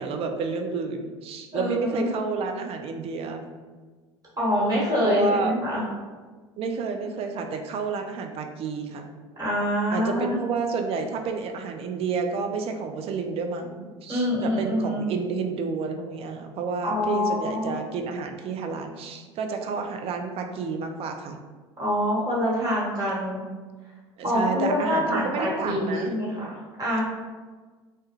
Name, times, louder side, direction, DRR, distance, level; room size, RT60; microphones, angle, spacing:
voice 1, 0.0-3.4 5.0-5.5 6.6-9.1 9.9-21.4 24.2-26.1, right 4 dB, 40° right, 4 dB, 0.4 m, -30 dB
voice 2, 1.5-2.0 4.4-5.8 9.4-10.4 14.1-15.0 16.8-17.7 21.8-23.4 24.2-27.0, equal, 25° right, -7 dB, 1.3 m, -25 dB
2.2 x 2.1 x 3.0 m, 1.4 s
hypercardioid pair, 75°, 15 cm